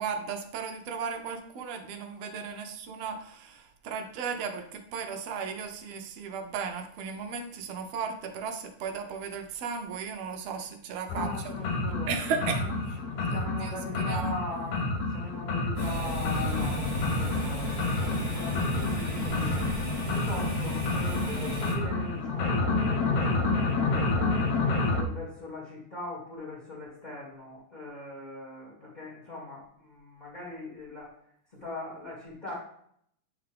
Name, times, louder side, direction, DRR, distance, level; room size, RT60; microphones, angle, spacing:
voice 1, 0.0-11.5 11.8-12.7 13.3-14.3, right 6 dB, 70° right, 4 dB, 1.6 m, -35 dB
sound 1, 11.1-25.0, left 3 dB, 75° left, 2.0 m, -29 dB
voice 2, 11.1-12.1 12.5-12.7 13.2-19.6 20.1-24.5 24.9-31.1 31.5-32.5, left 2 dB, 20° left, -8 dB, 1.5 m, -41 dB
sound 2, 15.8-21.7, equal, 45° left, 3.4 m, -33 dB
9.1 x 3.6 x 3.4 m, 0.66 s
omnidirectional pair, 3.3 m